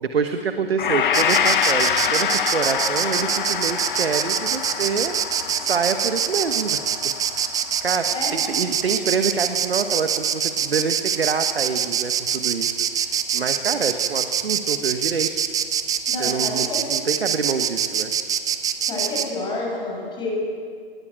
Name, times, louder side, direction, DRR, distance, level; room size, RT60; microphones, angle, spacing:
voice 1, 0.0-5.1 5.6-6.8 7.3-15.6 16.2-18.1, right 5 dB, 80° right, 7 dB, 1.3 m, -26 dB
Gong, 0.8-9.2 9.5-9.7, left 8 dB, 55° left, 1.3 m, -26 dB
Insect, 1.1-19.3, right 8 dB, 10° right, 0.7 m, -24 dB
voice 2, 16.1-16.8 18.8-20.3, left 2 dB, 15° left, -2 dB, 6.6 m, -29 dB
19.5 x 16.0 x 8.9 m, 2.1 s
hypercardioid pair, 135°, 30 cm